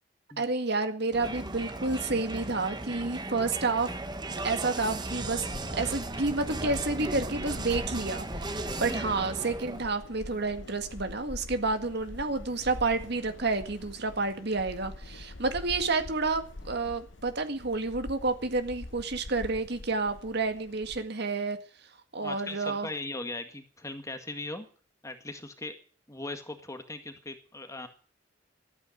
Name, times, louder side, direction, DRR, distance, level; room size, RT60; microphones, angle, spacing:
voice 1, 0.4-3.9 4.4-5.5 5.7-21.6 22.1-22.9, right 3 dB, 60° right, 8 dB, 1.9 m, -30 dB
Crowd, 1.1-10.0, right 2 dB, 20° right, 1.1 m, -36 dB
sound 1, 4.8-21.1, left 2 dB, 70° left, 1.1 m, -45 dB
voice 2, 22.2-24.7 25.0-25.7 26.1-27.9, left 2 dB, 15° left, 7 dB, 1.8 m, -39 dB
13.5 x 9.3 x 9.2 m, 0.41 s
head